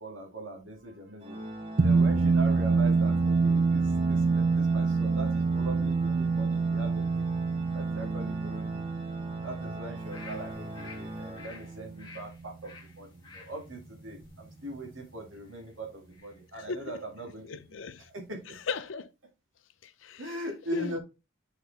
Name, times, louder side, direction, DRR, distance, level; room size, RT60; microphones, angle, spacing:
voice 1, 0.0-1.4 1.8-7.3 7.7-8.9 9.4-17.6 18.1-18.6 20.2-21.0, right 1 dB, 85° right, 2.1 m, -41 dB
Organ, 1.2-12.1, right 1 dB, 30° right, 1.0 m, -41 dB
sound 1, 1.8-12.5, right 4 dB, 50° right, 0.5 m, -27 dB
sound 2, 9.9-16.4 16.8-16.9, left 3 dB, 25° left, 1.2 m, -52 dB
voice 2, 16.5-17.0 17.5-18.0 18.7-19.1 19.8-20.3 20.7-20.9, left 5 dB, 75° left, 0.5 m, -36 dB
6.9 x 4.2 x 3.3 m
head